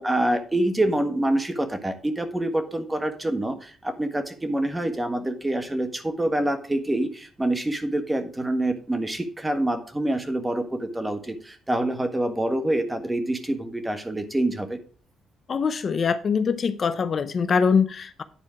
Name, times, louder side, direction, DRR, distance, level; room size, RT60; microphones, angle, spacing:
voice 1, 0.0-14.8, right 1 dB, 15° right, 8 dB, 1.5 m, -26 dB
voice 2, 15.5-18.2, left 5 dB, 45° left, 11 dB, 0.6 m, -23 dB
9.9 x 4.4 x 5.9 m, 0.42 s
cardioid pair, 90°, 0 cm